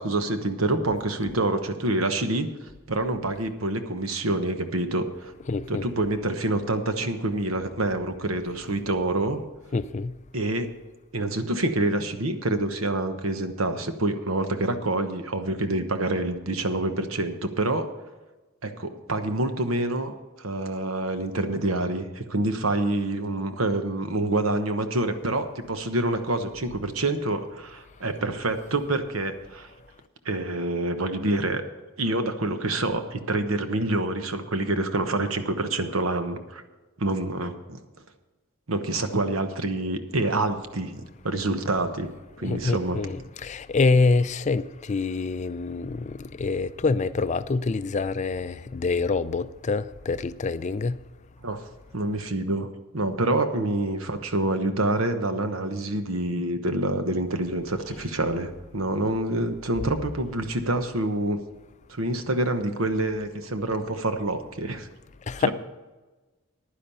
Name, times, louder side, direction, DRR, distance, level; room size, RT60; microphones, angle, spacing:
voice 1, 0.0-2.5 2.9-5.3 5.7-9.4 10.3-10.7 11.1-17.9 18.6-29.7 30.2-31.6 32.0-36.6 37.0-37.8 38.7-42.1 42.4-43.0 51.4-51.6 51.9-52.7 52.9-61.4 61.9-64.9 65.4-65.5, right 2 dB, 75° right, 1.1 m, -27 dB
voice 2, 5.5-5.9 9.7-10.1 42.4-51.0 65.3-65.5, left 3 dB, 35° left, 0.4 m, -26 dB
10.5 x 10.0 x 5.6 m
head